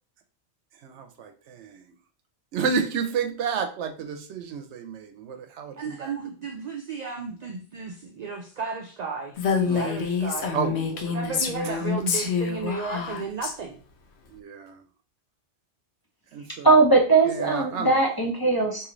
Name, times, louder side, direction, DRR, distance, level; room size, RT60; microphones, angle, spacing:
voice 1, 0.8-1.9 2.5-6.1 9.7-9.9 10.5-11.1 11.6-11.8 14.3-14.8 16.3-16.7 17.3-18.0, right 6 dB, 85° right, 7 dB, 0.9 m, -31 dB
voice 2, 5.8-10.6 11.1-13.8, right 4 dB, 60° right, 2 dB, 0.4 m, -34 dB
Female speech woman speaking, 9.4-13.5, left 5 dB, 70° left, 0.9 m, -27 dB
voice 3, 16.6-18.9, right 3 dB, 25° left, -3 dB, 0.6 m, -20 dB
3.1 x 2.8 x 3.8 m, 0.39 s
omnidirectional pair, 1.2 m